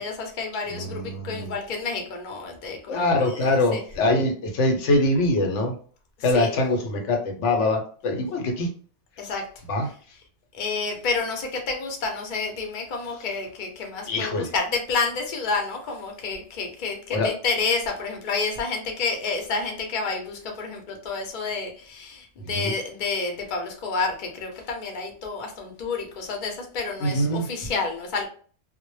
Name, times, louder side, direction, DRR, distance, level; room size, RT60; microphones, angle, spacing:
voice 1, 0.0-3.8 6.3-6.5 9.2-9.5 10.5-28.3, left 4 dB, 50° left, 2 dB, 0.7 m, -29 dB
voice 2, 0.7-1.5 2.9-5.8 6.2-8.7 9.7-9.9 14.1-14.5 17.1-17.3 22.4-22.7 27.0-27.5, left 2 dB, 80° left, 3 dB, 0.9 m, -23 dB
2.1 x 2.0 x 3.0 m, 0.43 s
omnidirectional pair, 1.2 m